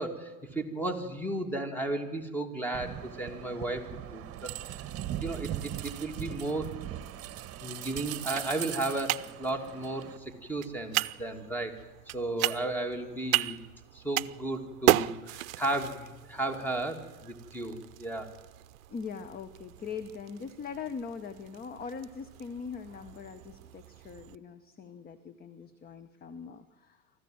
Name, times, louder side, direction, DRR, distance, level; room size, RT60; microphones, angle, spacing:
voice 1, 0.0-4.5 5.2-6.7 7.6-11.7 12.1-13.6 13.9-18.3, right 2 dB, 5° left, 7 dB, 2.5 m, -34 dB
sound 1, 2.7-10.2, right 12 dB, 35° right, 1.4 m, -39 dB
champagne fail, 6.5-24.4, right 15 dB, 65° right, 0.6 m, -36 dB
voice 2, 18.9-27.0, left 6 dB, 20° left, 11 dB, 0.9 m, -41 dB
24.0 x 14.5 x 7.8 m, 1.2 s
hypercardioid pair, 100°, 43 cm